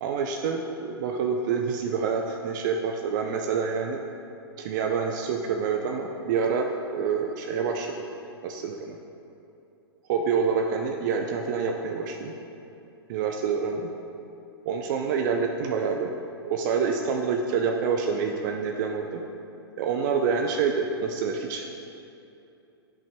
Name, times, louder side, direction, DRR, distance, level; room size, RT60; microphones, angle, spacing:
voice 1, 0.0-4.0 4.6-8.0 8.4-9.0 10.1-12.3 13.1-13.9 14.7-16.1 16.5-19.2 19.8-21.7, right 5 dB, 45° right, 3 dB, 0.5 m, -27 dB
10.5 x 5.5 x 2.2 m, 2.8 s
hypercardioid pair, 110°, 14 cm